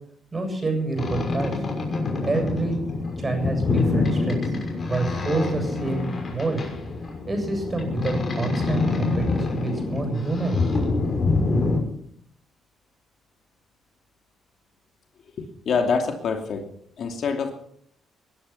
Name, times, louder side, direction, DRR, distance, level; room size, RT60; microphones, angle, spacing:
voice 1, 0.3-1.7 2.2-2.8 3.2-4.5 4.9-6.6 7.3-10.8, right 3 dB, 25° right, 5 dB, 7.4 m, -27 dB
Boat Water vehicle, 1.0-11.8, left 3 dB, 40° left, 6.1 m, -26 dB
voice 2, 15.4-16.6 17.0-17.5, left 5 dB, 60° left, 4 dB, 2.8 m, -25 dB
21.5 x 11.5 x 5.9 m, 0.67 s
cardioid pair, 90°, 0 cm